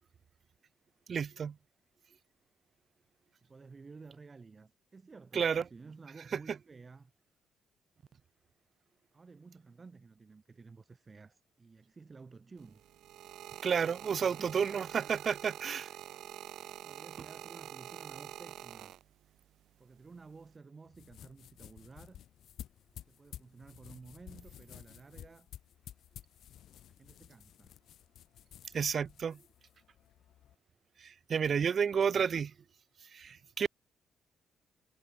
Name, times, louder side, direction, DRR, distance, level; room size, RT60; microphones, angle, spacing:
voice 1, 1.1-1.5 5.3-5.6 13.6-15.9 28.7-29.4 31.0-32.5 33.1-33.7, right 7 dB, 50° right, 1.0 m, -31 dB
voice 2, 3.4-7.1 9.1-12.8 13.9-15.1 16.8-18.9 19.2-19.3 19.8-22.2 23.1-25.5 26.9-27.7 31.9-32.4, right 4 dB, 30° right, 3.1 m, -54 dB
sound 1, 12.6-19.4 20.2-20.6, right 12 dB, 80° right, 1.7 m, -47 dB
sound 2, 20.9-30.5, left 11 dB, 75° left, 1.0 m, -53 dB
cardioid pair, 90°, 0 cm